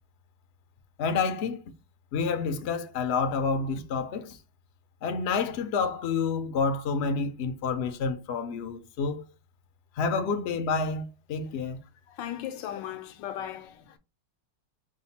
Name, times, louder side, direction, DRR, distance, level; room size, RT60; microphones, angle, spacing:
voice 1, 1.0-1.6 2.1-4.4 5.0-9.2 10.0-11.8, left 5 dB, 70° left, 0.6 m, -29 dB
voice 2, 12.1-14.0, left 11 dB, 85° left, 1.3 m, -37 dB
5.0 x 2.1 x 4.0 m
omnidirectional pair, 1.9 m